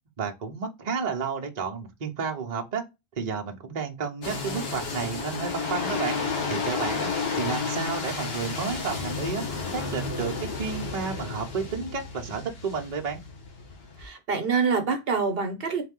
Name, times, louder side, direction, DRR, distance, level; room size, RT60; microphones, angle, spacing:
voice 1, 0.2-2.8 3.2-6.2 6.5-7.1 7.4-9.4 9.7-13.2, right 5 dB, 45° right, 0.8 m, -31 dB
sound 1, 4.2-14.1, left 4 dB, 70° left, 1.2 m, -32 dB
voice 2, 14.0-15.8, right 5 dB, 65° right, 1.0 m, -26 dB
4.0 x 2.7 x 3.6 m
omnidirectional pair, 1.1 m